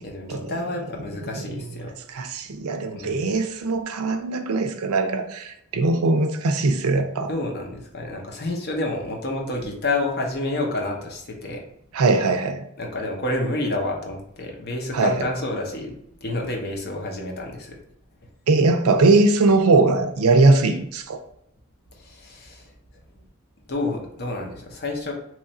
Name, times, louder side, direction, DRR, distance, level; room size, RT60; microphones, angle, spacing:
voice 1, 0.0-1.9 2.9-3.4 7.3-11.6 12.8-17.8 21.9-22.7 23.1-23.2 23.7-25.1, left 2 dB, 50° left, 0.8 m, -29 dB
voice 2, 1.5-7.3 11.9-12.6 14.9-15.2 18.5-21.2, right 3 dB, 75° right, 0.5 m, -20 dB
3.1 x 2.4 x 4.2 m
head